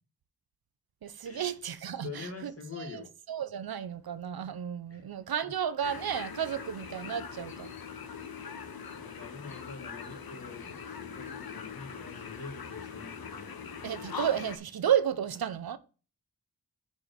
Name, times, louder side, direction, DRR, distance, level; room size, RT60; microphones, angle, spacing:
voice 1, 1.0-2.5 2.8-3.0 3.3-7.7 13.8-15.8, right 9 dB, 75° right, 0.7 m, -32 dB
voice 2, 2.0-3.1 4.9-5.1 5.4-5.5 8.3-13.5 14.1-14.3, left 5 dB, 40° left, 2.0 m, -45 dB
sound 1, 5.8-14.6, left 6 dB, 70° left, 1.1 m, -42 dB
7.1 x 4.6 x 5.2 m
wide cardioid pair, 105°, 37 cm